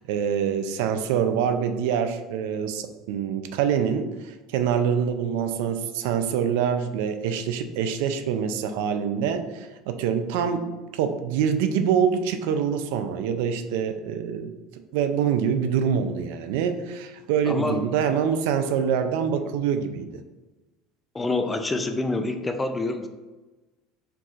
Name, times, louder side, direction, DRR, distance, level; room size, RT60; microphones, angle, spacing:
voice 1, 0.1-20.1, right 7 dB, 80° right, 8 dB, 0.4 m, -25 dB
voice 2, 17.5-17.8 21.1-23.1, left 2 dB, 10° left, 6 dB, 0.3 m, -26 dB
4.5 x 4.0 x 2.4 m, 1.2 s
cardioid pair, 145°, 0 cm